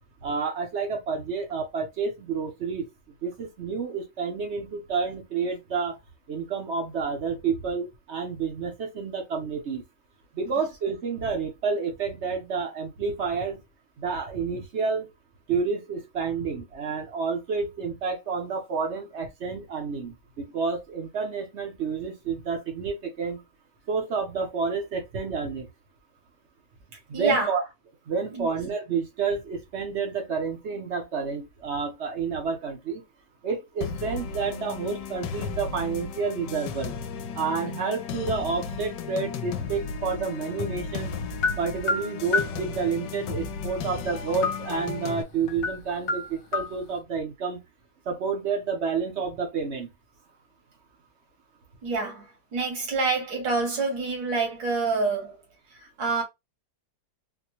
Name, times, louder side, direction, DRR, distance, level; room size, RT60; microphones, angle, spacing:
voice 1, 0.2-2.9 3.2-6.0 6.3-9.8 10.3-13.6 14.0-15.1 15.5-23.4 23.9-25.7 27.1-27.6 28.1-33.0 33.4-36.9 37.4-41.1 41.6-47.6 48.1-49.9, right 5 dB, 50° right, 0.9 m, -29 dB
voice 2, 27.1-27.5 28.3-28.5 51.8-55.4 55.7-56.2, right 3 dB, 75° right, 2.1 m, -27 dB
sound 1, 33.8-45.2, left 5 dB, 75° left, 1.2 m, -35 dB
sound 2, 41.4-42.6 44.1-45.0 45.5-45.8 46.1-46.7, left 3 dB, 55° left, 0.8 m, -28 dB
4.2 x 2.2 x 2.9 m
omnidirectional pair, 2.0 m